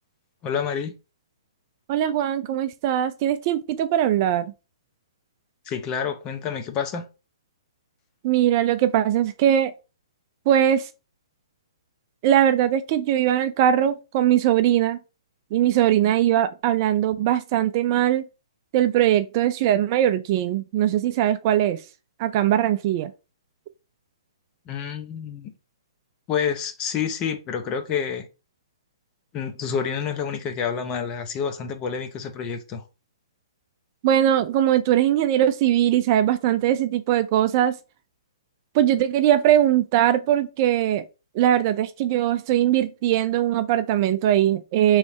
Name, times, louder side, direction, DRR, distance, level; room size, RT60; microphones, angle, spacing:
voice 1, 0.4-0.9 5.7-7.0 24.7-25.5 26.3-28.3 29.3-32.8, left 7 dB, 25° left, 0.7 m, -28 dB
voice 2, 1.9-4.5 8.2-9.7 10.5-10.9 12.2-15.0 15.5-18.3 18.7-21.8 22.2-23.1 34.0-37.8 38.7-41.1 41.3-45.0, right 11 dB, 40° right, 0.4 m, -20 dB
3.4 x 3.1 x 4.1 m
hypercardioid pair, 140°, 3 cm